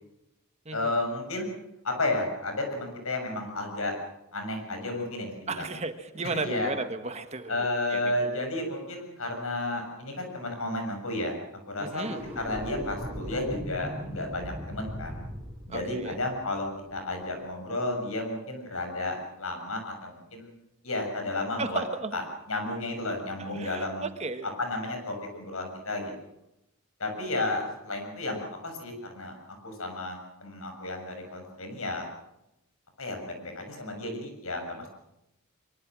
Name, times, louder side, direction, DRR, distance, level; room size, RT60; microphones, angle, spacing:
voice 1, 0.7-1.5 1.8-3.9 4.3-5.7 6.3-6.7 7.5-11.4 11.7-15.3 15.7-20.5 20.8-21.8 22.1-22.2 22.5-24.0 24.6-26.1 27.0-32.1 33.0-34.9, left 2 dB, 70° left, 4 dB, 6.8 m, -32 dB
voice 2, 5.5-8.1 11.8-12.2 15.7-16.2 21.6-22.2 23.4-24.5 34.8-34.9, right 3 dB, 30° right, 8 dB, 1.4 m, -34 dB
sound 1, 12.0-17.2, equal, 10° right, 6.2 m, -39 dB
23.5 x 23.5 x 6.2 m, 0.87 s
head